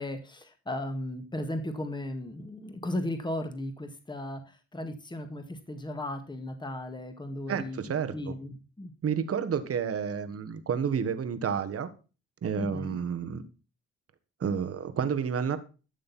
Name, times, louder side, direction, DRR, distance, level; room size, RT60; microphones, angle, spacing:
voice 1, 0.0-7.8 8.1-8.9 12.6-13.0, left 1 dB, 15° left, 7 dB, 2.0 m, -36 dB
voice 2, 7.5-8.3 9.0-11.9 12.4-13.4 14.4-15.6, right 7 dB, 50° right, 11 dB, 1.5 m, -30 dB
13.0 x 6.6 x 4.2 m, 0.34 s
cardioid pair, 90°, 30 cm